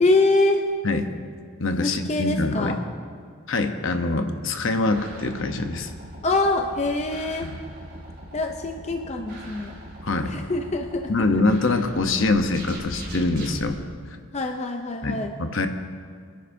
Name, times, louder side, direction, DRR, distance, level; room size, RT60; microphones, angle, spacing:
voice 1, 0.0-0.6 1.8-2.8 6.2-7.5 8.3-9.7 10.3-11.1 14.3-15.3, left 2 dB, 30° left, 4 dB, 0.6 m, -24 dB
voice 2, 1.6-2.8 3.5-5.9 7.4-7.6 10.0-10.3 11.1-14.2 15.0-15.7, left 2 dB, 60° left, 6 dB, 0.9 m, -24 dB
sound 1, 4.9-13.6, right 1 dB, 45° right, 2.7 m, -41 dB
27.0 x 10.5 x 2.7 m, 2.1 s
head